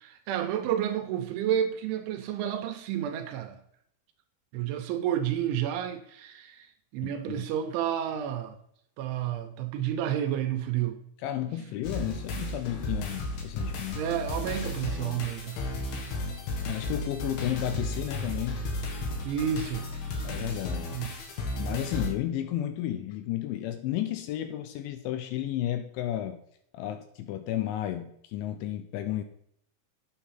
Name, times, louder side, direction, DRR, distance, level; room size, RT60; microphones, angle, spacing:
voice 1, 0.0-3.6 4.5-6.7 6.9-8.6 9.0-11.0 14.0-15.6 19.2-19.8 20.9-21.1, right 10 dB, 80° right, 3.0 m, -30 dB
voice 2, 7.0-7.5 11.2-14.0 16.6-18.6 20.2-20.9 21.6-26.4 26.7-29.2, left 12 dB, 80° left, 2.8 m, -32 dB
sound 1, 11.8-22.1, left 2 dB, 60° left, 3.1 m, -34 dB
9.1 x 7.5 x 5.7 m
omnidirectional pair, 5.8 m